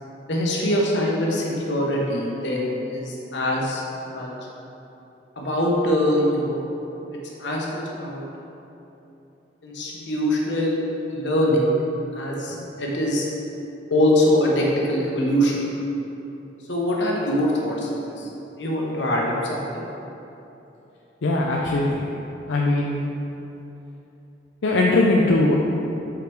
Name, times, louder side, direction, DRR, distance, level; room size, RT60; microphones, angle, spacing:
voice 1, 0.3-3.8 4.1-4.3 5.4-6.7 7.4-8.2 9.6-10.8 11.1-11.7 12.1-13.2 13.9-15.6 16.7-18.3 18.6-19.8, equal, 70° left, -3 dB, 1.1 m, -23 dB
voice 2, 21.2-22.1 22.5-23.0 24.6-25.6, left 2 dB, 90° left, -2 dB, 0.5 m, -20 dB
5.1 x 4.9 x 4.5 m, 2.9 s
head